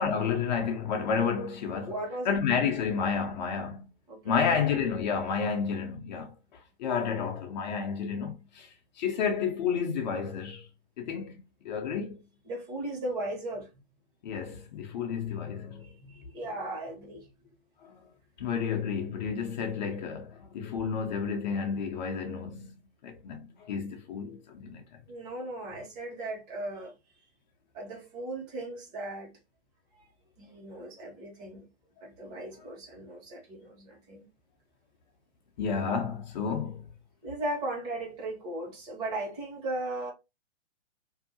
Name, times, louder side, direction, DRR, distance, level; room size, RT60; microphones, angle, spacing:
voice 1, 0.0-1.9 2.3-3.8 4.2-10.7 11.0-12.2 14.2-15.9 17.8-18.0 18.4-22.7 23.0-24.8 32.3-32.5 35.6-36.9, left 6 dB, 40° left, 0.6 m, -31 dB
voice 2, 1.9-2.3 4.1-4.4 12.5-13.7 15.8-17.5 25.1-26.9 27.7-29.3 29.9-30.1 30.4-31.7 32.0-34.3 37.2-40.1, right 2 dB, 35° right, 1.3 m, -37 dB
2.6 x 2.5 x 2.6 m
hypercardioid pair, 140°, 35 cm